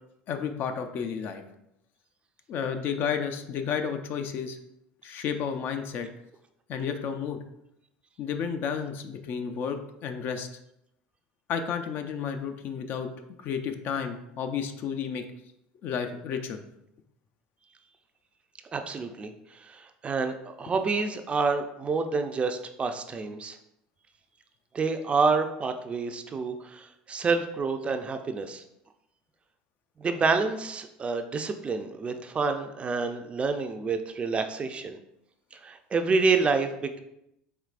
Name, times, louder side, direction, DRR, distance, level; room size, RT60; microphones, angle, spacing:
voice 1, 0.3-1.4 2.5-4.6 5.0-6.1 6.7-7.4 8.2-10.5 11.5-13.1 13.4-15.2 15.8-16.6, left 7 dB, 55° left, 7 dB, 0.4 m, -31 dB
voice 2, 18.7-19.3 19.6-23.6 24.7-28.6 30.0-35.0 35.5-37.0, right 4 dB, 30° right, 7 dB, 0.4 m, -28 dB
4.6 x 3.1 x 2.5 m, 0.82 s
supercardioid pair, 90°, 4 cm